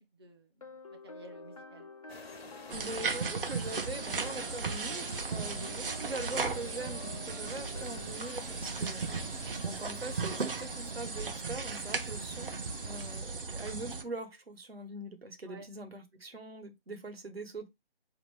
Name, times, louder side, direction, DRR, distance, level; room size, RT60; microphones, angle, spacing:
voice 1, 0.1-1.9 5.5-5.7 15.5-15.7, right 2 dB, 25° right, 0.4 m, -53 dB
sound 1, 0.6-8.2, left 3 dB, 40° left, 0.4 m, -49 dB
sound 2, 2.1-13.2, left 4 dB, 85° left, 0.7 m, -52 dB
sound 3, 2.7-14.0, right 4 dB, 65° right, 0.8 m, -36 dB
voice 2, 2.7-12.5 12.8-17.7, right 2 dB, 80° right, 1.2 m, -43 dB
4.3 x 2.8 x 3.3 m
figure-of-eight pair, 145°, 30 cm